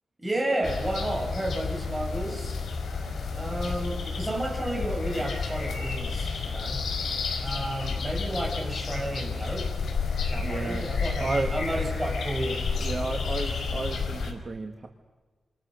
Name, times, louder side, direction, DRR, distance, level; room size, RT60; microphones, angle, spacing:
voice 1, 0.2-2.6 3.3-6.8 7.4-9.7 10.2-12.6, right 1 dB, 15° right, 0 dB, 7.4 m, -32 dB
sound 1, 0.6-14.3, left 4 dB, 85° left, 5.1 m, -31 dB
voice 2, 10.4-10.9 11.2-11.5 12.8-14.9, right 3 dB, 40° right, 4 dB, 2.1 m, -32 dB
28.5 x 28.0 x 6.6 m, 1.3 s
wide cardioid pair, 125°, 0 cm